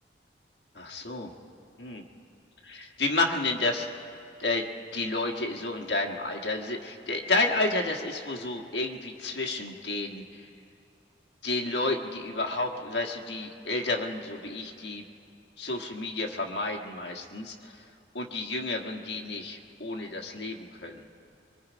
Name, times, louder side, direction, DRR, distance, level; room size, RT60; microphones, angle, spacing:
voice 1, 0.7-1.3 1.8-2.0 2.6-3.9 4.4-4.7 4.9-10.4 11.4-15.0 15.6-17.8 18.1-21.0, left 2 dB, 70° left, 2 dB, 1.5 m, -31 dB
24.0 x 23.5 x 5.1 m, 2.6 s
head